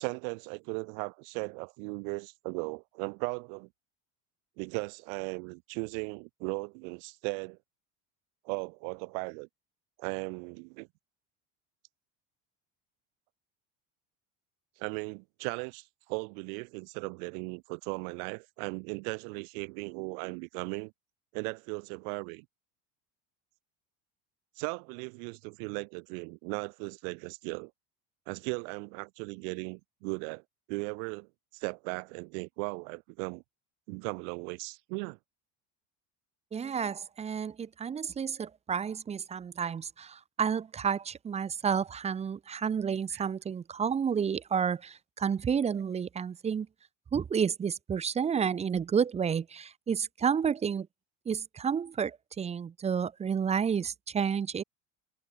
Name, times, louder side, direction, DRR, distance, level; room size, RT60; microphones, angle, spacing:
voice 1, 0.0-3.7 4.6-7.6 8.4-9.5 10.0-10.9 14.8-20.9 21.3-22.5 24.6-27.7 28.3-30.4 30.7-33.4 33.9-35.2 43.1-43.3, right 38 dB, 80° right, 2.1 m, -37 dB
voice 2, 36.5-46.7 47.1-50.9 51.3-54.6, right 7 dB, 15° right, 0.5 m, -30 dB
cardioid pair, 140°, 40 cm